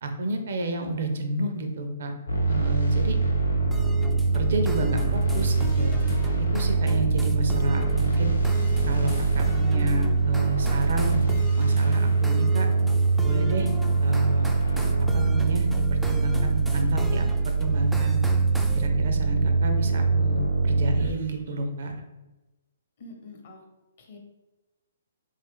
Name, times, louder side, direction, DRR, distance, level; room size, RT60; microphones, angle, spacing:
voice 1, 0.0-2.1 2.4-3.2 4.3-5.9 6.4-8.3 8.9-11.2 11.6-12.7 13.2-13.7 14.0-14.5 15.1-18.2 18.7-22.0, right 2 dB, 55° right, 5 dB, 0.5 m, -30 dB
sound 1, 2.3-21.1, right 3 dB, 80° left, 0.8 m, -23 dB
sound 2, 3.7-18.9, right 2 dB, 5° right, 0.3 m, -38 dB
voice 2, 23.0-23.6 24.0-24.2, left 2 dB, 45° left, 1 dB, 0.8 m, -45 dB
3.5 x 2.4 x 3.6 m, 1.1 s
figure-of-eight pair, 120°, 0 cm